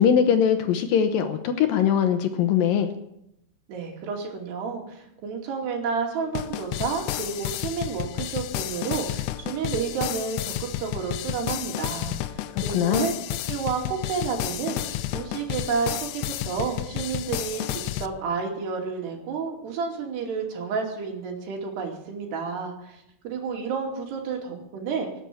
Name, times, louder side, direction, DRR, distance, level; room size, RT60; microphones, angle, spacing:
voice 1, 0.0-2.9 12.5-13.1, left 8 dB, 70° left, 8 dB, 2.4 m, -21 dB
voice 2, 3.7-25.1, right 5 dB, 80° right, 1 dB, 4.7 m, -31 dB
sound 1, 6.4-18.1, left 14 dB, 85° left, 2.8 m, -31 dB
18.5 x 8.8 x 8.5 m, 0.81 s
omnidirectional pair, 4.7 m